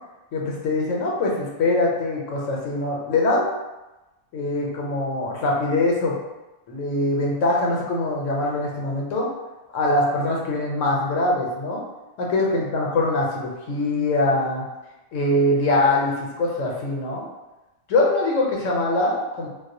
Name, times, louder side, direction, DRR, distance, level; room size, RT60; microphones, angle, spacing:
voice 1, 0.3-3.5 4.3-6.1 6.7-9.3 9.7-11.8 12.2-14.6 15.1-17.3 17.9-19.5, left 2 dB, 85° left, -2 dB, 1.0 m, -23 dB
2.3 x 2.0 x 2.6 m, 1.0 s
omnidirectional pair, 1.3 m